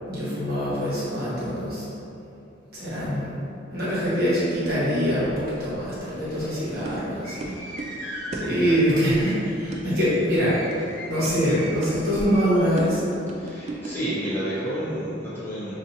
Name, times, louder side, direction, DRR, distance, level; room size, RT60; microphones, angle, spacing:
voice 1, 0.0-1.8 2.7-3.4 3.7-7.5 8.3-10.6 11.0-13.0, equal, 50° right, -10 dB, 1.2 m, -24 dB
voice 2, 6.2-6.7 7.4-8.8 13.4-15.7, equal, 10° left, -11 dB, 0.7 m, -32 dB
sound 1, 6.6-14.1, right 2 dB, 35° right, 0.3 m, -37 dB
sound 2, 7.2-12.9, equal, 75° left, 0.9 m, -40 dB
5.2 x 2.6 x 2.7 m, 2.8 s
head